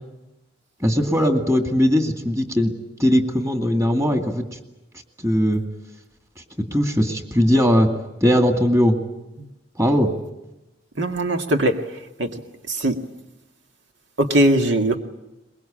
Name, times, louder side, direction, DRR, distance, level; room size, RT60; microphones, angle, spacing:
voice 1, 0.8-2.7 3.0-4.6 5.2-5.6 6.7-7.9 8.2-9.0 9.8-10.1, equal, 15° right, 5 dB, 2.2 m, -19 dB
voice 2, 11.0-11.8 12.2-12.4 12.7-13.0 14.2-15.0, right 1 dB, 85° right, 5 dB, 2.0 m, -20 dB
23.0 x 22.0 x 8.8 m, 0.96 s
head